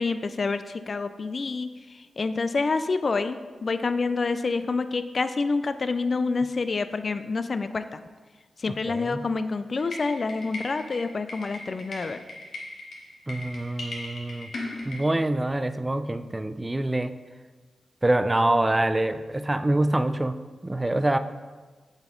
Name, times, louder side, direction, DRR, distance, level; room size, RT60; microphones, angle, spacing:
voice 1, 0.0-8.0 8.6-12.2, left 4 dB, 55° left, 11 dB, 0.3 m, -27 dB
voice 2, 8.7-9.3 13.3-14.5 14.9-17.1 18.0-20.4 20.6-21.2, right 1 dB, 25° right, 11 dB, 0.4 m, -25 dB
sound 1, 9.8-15.0, left 2 dB, 70° left, 1.2 m, -38 dB
7.0 x 4.0 x 3.9 m, 1.3 s
supercardioid pair, 45°, 0 cm